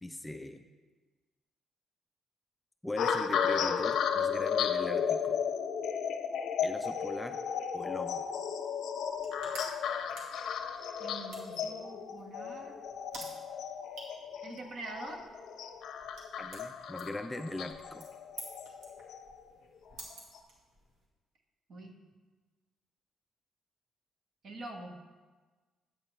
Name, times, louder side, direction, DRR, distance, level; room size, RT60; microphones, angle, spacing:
voice 1, 0.0-0.6 2.8-5.4 6.6-7.4 7.7-8.2 16.4-18.1, left 1 dB, 5° left, 6 dB, 0.3 m, -40 dB
sound 1, 3.0-19.4 20.1-20.4, left 7 dB, 75° left, 0.5 m, -34 dB
sound 2, 9.0-21.1, right 1 dB, 75° right, 2.0 m, -52 dB
voice 2, 11.0-12.8 14.4-15.2 21.7-22.0 24.4-25.0, right 2 dB, 50° right, 2 dB, 1.0 m, -44 dB
8.9 x 7.7 x 3.1 m, 1.4 s
cardioid pair, 135°, 0 cm